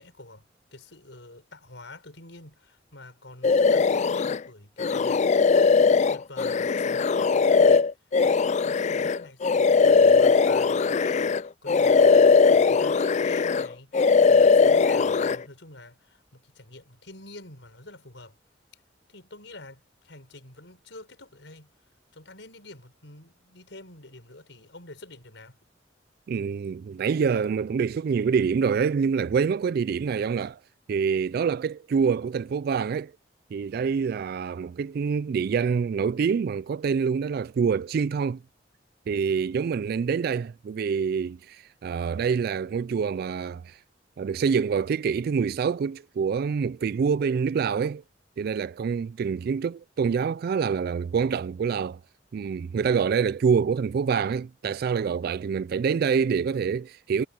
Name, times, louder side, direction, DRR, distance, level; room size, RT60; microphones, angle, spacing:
voice 1, 0.0-5.2 6.1-7.9 8.6-18.4 18.7-18.8 19.1-21.7 22.1-25.6, left 2 dB, 75° left, 5.9 m, -47 dB
sound 1, 3.4-4.4 4.8-11.4 11.7-13.7 13.9-15.4, left 5 dB, 40° left, 0.4 m, -20 dB
voice 2, 26.3-30.6 30.9-33.1 33.5-38.4 39.1-43.8 44.2-48.0 48.4-52.0 52.3-57.3, right 6 dB, 55° right, 0.3 m, -26 dB
head